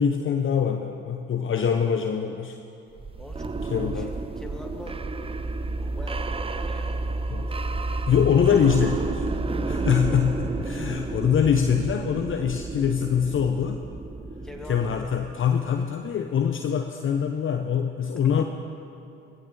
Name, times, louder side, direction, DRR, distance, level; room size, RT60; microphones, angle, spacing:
voice 1, 0.0-2.6 3.7-4.1 7.3-7.5 8.1-9.3 9.6-13.8 14.7-18.4, left 7 dB, 35° left, 5 dB, 0.9 m, -24 dB
sound 1, 2.9-15.7, right 3 dB, 15° right, 0.7 m, -31 dB
voice 2, 3.2-5.0 5.8-7.0 10.7-11.1 14.4-15.1 18.4-18.5, left 1 dB, ahead, 0 dB, 2.5 m, -44 dB
20.0 x 16.0 x 3.4 m, 2.8 s
figure-of-eight pair, 50°, 35 cm